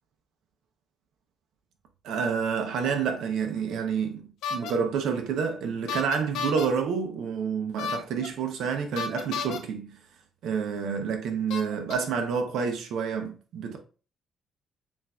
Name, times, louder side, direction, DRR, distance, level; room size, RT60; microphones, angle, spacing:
voice 1, 2.0-9.9 10.4-13.8, right 6 dB, 80° right, 0.8 m, -29 dB
sound 1, 4.4-4.7 5.9-6.7 7.8-8.3 9.0-9.6 10.7-10.8 11.5-11.9, left 5 dB, 85° left, 0.6 m, -32 dB
7.2 x 2.6 x 2.3 m
cardioid pair, 90°, 0 cm